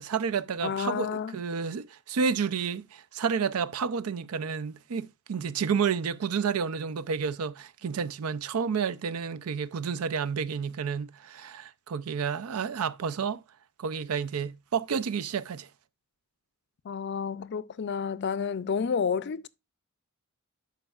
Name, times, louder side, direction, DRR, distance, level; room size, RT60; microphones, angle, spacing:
voice 1, 0.0-13.4 13.8-15.7, right 6 dB, 90° right, 0.5 m, -30 dB
voice 2, 0.6-1.3 16.8-19.5, left 6 dB, 55° left, 0.4 m, -30 dB
12.5 x 4.6 x 2.4 m
head